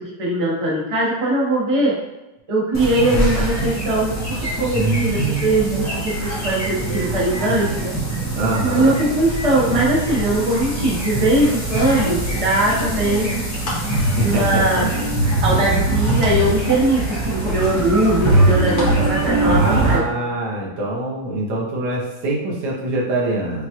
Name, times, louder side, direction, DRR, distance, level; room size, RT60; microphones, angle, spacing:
voice 1, 0.0-1.9 2.5-4.1 4.6-8.0 8.6-13.3 14.2-14.8 15.4-20.3, right 1 dB, 25° right, -5 dB, 0.7 m, -20 dB
sound 1, 2.7-20.0, right 2 dB, 20° left, 0.4 m, -22 dB
voice 2, 8.3-9.0 14.0-14.9 19.4-23.7, right 1 dB, 70° right, -4 dB, 1.5 m, -24 dB
sound 2, 10.6-11.0 11.7-13.9 14.4-14.9 15.3-16.4 16.8-16.9 17.8-18.9 19.2-20.0, left 1 dB, 65° left, 1.5 m, -33 dB
5.8 x 2.3 x 2.9 m, 0.98 s
omnidirectional pair, 1.9 m